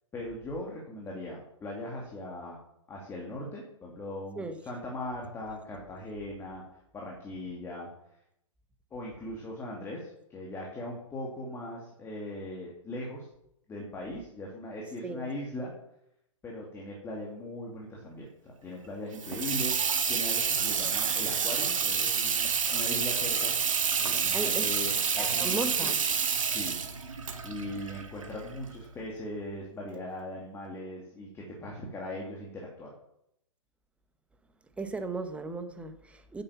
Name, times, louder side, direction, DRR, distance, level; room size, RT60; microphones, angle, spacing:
voice 1, 0.1-2.6 2.9-6.6 6.9-7.9 8.9-13.3 13.7-15.7 16.4-19.7 20.1-23.5 24.0-25.9 26.5-26.8 27.4-32.9, left 1 dB, 15° left, 2.4 m, -39 dB
Water tap faucet / Sink (filling or washing), 19.1-28.7, right 6 dB, 75° right, 2.1 m, -29 dB
voice 2, 24.3-24.7 25.2-26.0 34.8-36.4, right 3 dB, 5° right, 1.0 m, -36 dB
10.0 x 7.9 x 7.1 m
hypercardioid pair, 135°, 17 cm